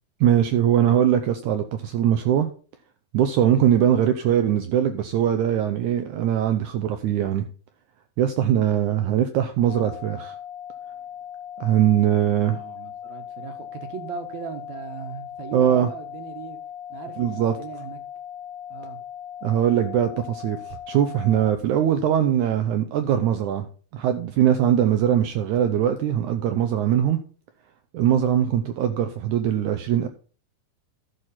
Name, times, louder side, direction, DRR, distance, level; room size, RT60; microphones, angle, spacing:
voice 1, 0.2-2.5 3.1-7.5 8.2-10.4 11.6-12.6 15.5-15.9 17.2-17.5 19.4-23.7 23.9-27.2 27.9-30.1, right 10 dB, 85° right, 8 dB, 1.7 m, -21 dB
sound 1, 9.7-21.5, left 9 dB, 75° left, 1.9 m, -38 dB
voice 2, 12.5-16.6 16.9-18.0 18.7-19.0, right 6 dB, 60° right, 6 dB, 2.2 m, -38 dB
13.0 x 6.4 x 4.2 m, 0.40 s
omnidirectional pair, 4.2 m